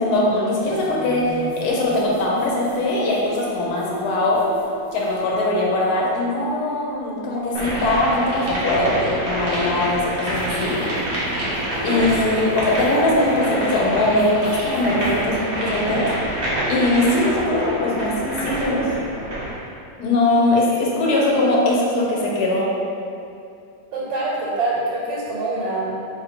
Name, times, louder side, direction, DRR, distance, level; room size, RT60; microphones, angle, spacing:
voice 1, 0.0-4.4 4.9-10.8 11.8-16.1 16.7-18.9 20.0-22.7, left 2 dB, 70° left, -3 dB, 1.0 m, -21 dB
sound 1, 0.6-6.1 8.1-8.2 10.3-15.2, right 2 dB, 25° left, 1.1 m, -39 dB
sound 2, 7.5-19.6, right 1 dB, 55° right, 0.6 m, -27 dB
voice 2, 23.9-26.0, right 2 dB, 90° right, -6 dB, 1.3 m, -25 dB
2.8 x 2.6 x 4.1 m, 2.5 s
omnidirectional pair, 2.0 m